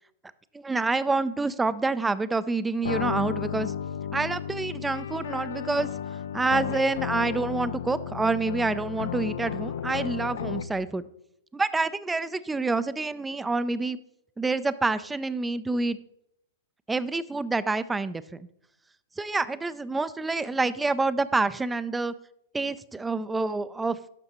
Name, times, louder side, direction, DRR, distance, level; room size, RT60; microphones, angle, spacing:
voice 1, 0.6-3.7 4.1-5.9 6.3-11.1 11.5-14.0 14.4-16.0 16.9-18.5 19.2-22.1 22.5-24.0, right 3 dB, 10° right, 16 dB, 0.3 m, -27 dB
sound 1, 2.8-10.9, left 8 dB, 75° left, 0.3 m, -33 dB
12.0 x 5.5 x 2.9 m, 0.79 s
hypercardioid pair, 120°, 0 cm